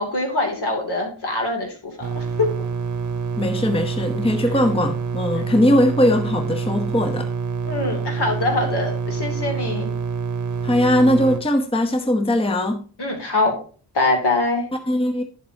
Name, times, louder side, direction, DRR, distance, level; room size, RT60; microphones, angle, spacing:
voice 1, 0.0-2.5 7.6-9.9 13.0-13.5 13.9-14.7, left 2 dB, 55° left, 3 dB, 2.9 m, -23 dB
sound 1, 2.0-11.4, right 5 dB, 40° right, 1.0 m, -26 dB
voice 2, 3.4-7.3 10.6-12.8 14.9-15.2, left 1 dB, 10° left, 7 dB, 0.9 m, -20 dB
10.5 x 7.2 x 2.8 m, 0.40 s
hypercardioid pair, 45°, 48 cm